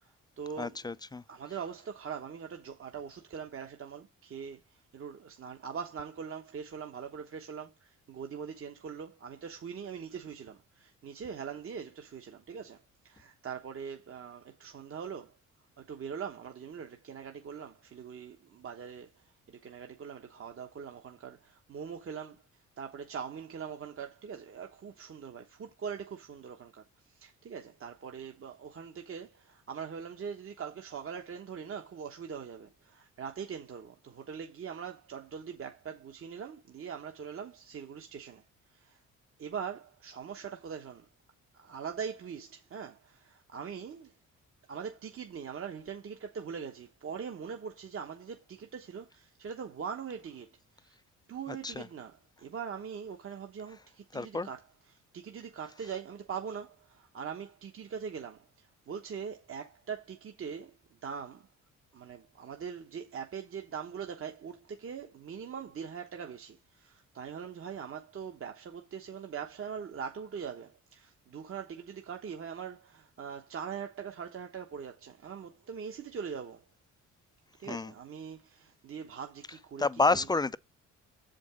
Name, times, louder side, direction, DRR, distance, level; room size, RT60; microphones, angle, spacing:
voice 1, 0.0-0.8 1.3-15.3 15.8-22.4 22.8-38.4 38.7-39.0 39.4-41.1 41.6-44.1 44.7-50.5 50.8-51.0 51.3-54.6 54.9-60.7 61.0-61.5 61.9-76.6 77.6-79.9 80.1-80.3, right 7 dB, 45° right, 1.1 m, -42 dB
voice 2, 0.6-1.2 51.5-51.9 54.1-54.5 77.7-77.9 79.8-80.6, left 3 dB, 15° left, 0.4 m, -29 dB
7.2 x 5.2 x 5.0 m
cardioid pair, 90°, 30 cm